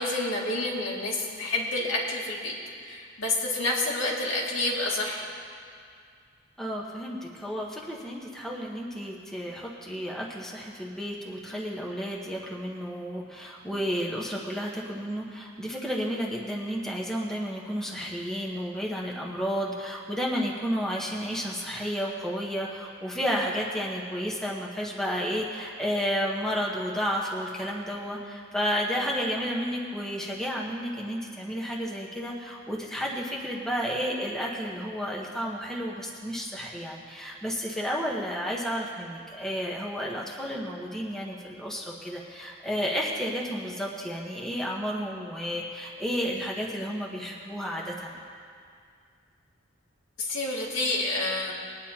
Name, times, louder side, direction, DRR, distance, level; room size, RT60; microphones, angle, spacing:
voice 1, 0.0-2.5 2.8-5.3 50.2-51.5, left 2 dB, 85° left, -3 dB, 2.3 m, -29 dB
voice 2, 6.6-48.1, equal, ahead, -4 dB, 1.1 m, -32 dB
21.5 x 9.9 x 2.9 m, 2.3 s
head